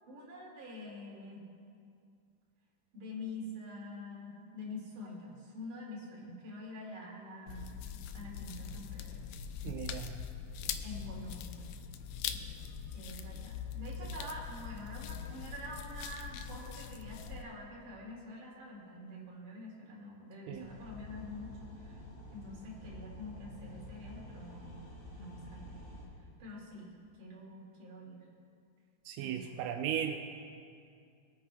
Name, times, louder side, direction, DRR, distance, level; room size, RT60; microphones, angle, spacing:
voice 1, 0.1-1.5 2.9-7.7 8.1-9.2 10.8-11.7 12.2-12.4 12.9-22.0 22.3-24.8 25.2-25.8 26.4-26.9 27.2-28.3 29.2-29.5, left 1 dB, 60° right, -4 dB, 3.5 m, -46 dB
sound 1, 7.5-17.4, left 8 dB, 85° left, 1.8 m, -42 dB
voice 2, 9.6-10.2 20.5-20.7 29.1-30.2, right 9 dB, 80° right, 4 dB, 2.0 m, -36 dB
sound 2, 20.5-26.0, left 1 dB, 30° left, 2.6 m, -49 dB
23.0 x 9.2 x 2.2 m, 2.4 s
omnidirectional pair, 4.2 m